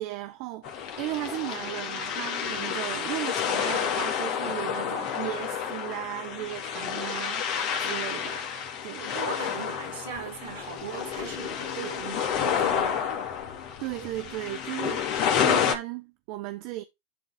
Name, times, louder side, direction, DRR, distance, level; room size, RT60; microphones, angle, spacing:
voice 1, 0.0-8.4 8.8-9.1 13.8-16.8, right 16 dB, 60° right, 0.8 m, -36 dB
sound 1, 0.6-15.7, left 8 dB, 55° left, 2.7 m, -30 dB
voice 2, 4.4-5.1 9.0-13.2, right 7 dB, 80° right, 4.3 m, -39 dB
12.0 x 4.1 x 3.7 m
hypercardioid pair, 95°, 0 cm